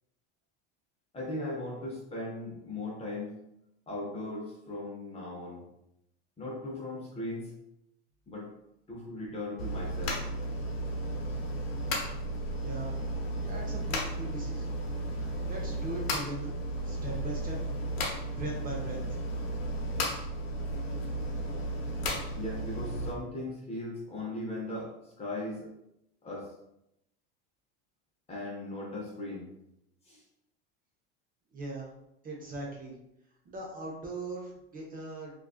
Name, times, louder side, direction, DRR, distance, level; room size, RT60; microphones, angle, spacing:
voice 1, 1.1-3.3 3.9-5.7 6.4-7.5 8.3-8.5 8.9-10.2 20.8-20.9 22.3-25.7 26.2-26.5 28.3-29.5 30.1-30.2, left 2 dB, 20° left, -2 dB, 0.7 m, -38 dB
sound 1, 9.6-23.1, right 1 dB, 90° left, 0.7 m, -34 dB
voice 2, 12.6-12.9 13.4-14.7 15.1-16.6 16.8-17.6 18.3-19.2 31.5-31.9 32.2-32.9 33.5-35.4, right 2 dB, 30° right, -1 dB, 0.6 m, -40 dB
2.4 x 2.3 x 2.4 m, 0.82 s
supercardioid pair, 105°, 30 cm